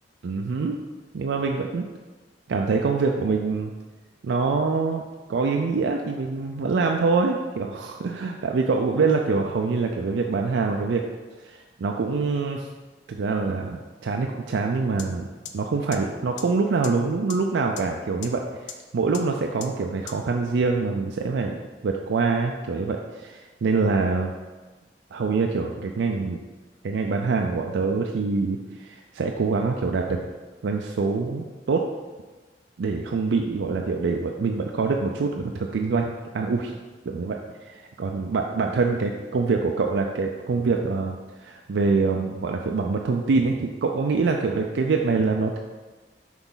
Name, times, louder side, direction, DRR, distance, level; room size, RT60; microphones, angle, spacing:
voice 1, 0.2-0.8 1.1-1.9 2.5-3.7 4.2-5.0 5.3-11.0 11.4-12.7 13.1-15.3 15.5-18.4 18.9-21.6 21.8-24.3 25.1-26.4 26.8-30.2 30.6-31.9 32.8-36.7 37.1-37.4 37.7-45.6, right 4 dB, 75° right, 2 dB, 0.4 m, -25 dB
sound 1, 15.0-15.1 15.5-15.6 15.9-16.0 16.4-16.5 16.8-16.9 17.3-17.4 17.8-17.9 18.2-18.3 18.7-18.8 19.1-19.2 19.6-19.7 20.1-20.2, left 9 dB, 70° left, 0.5 m, -35 dB
5.9 x 4.0 x 4.0 m, 1.3 s
head